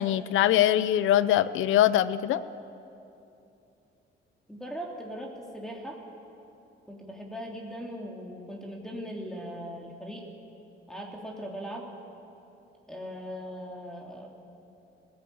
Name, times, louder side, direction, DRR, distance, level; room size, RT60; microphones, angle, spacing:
voice 1, 0.0-2.4, left 12 dB, 85° left, 15 dB, 0.7 m, -23 dB
voice 2, 4.5-6.0 6.9-10.2 10.9-11.9 12.9-14.3, equal, 5° left, -1 dB, 3.1 m, -39 dB
21.0 x 15.5 x 8.7 m, 2.8 s
cardioid pair, 90°, 20 cm